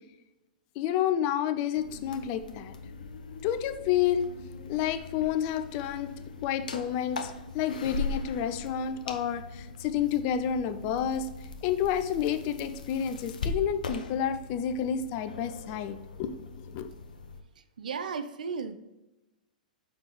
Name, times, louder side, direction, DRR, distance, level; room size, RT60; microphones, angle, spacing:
voice 1, 0.8-2.7 3.4-4.3 4.7-6.1 6.4-11.3 11.6-16.9, left 9 dB, 40° left, 10 dB, 0.7 m, -30 dB
sound 1, 1.8-17.4, left 4 dB, 70° left, 0.8 m, -40 dB
voice 2, 17.8-18.8, right 5 dB, 70° right, 10 dB, 0.7 m, -34 dB
7.0 x 5.8 x 3.3 m, 0.98 s
figure-of-eight pair, 100°, 5 cm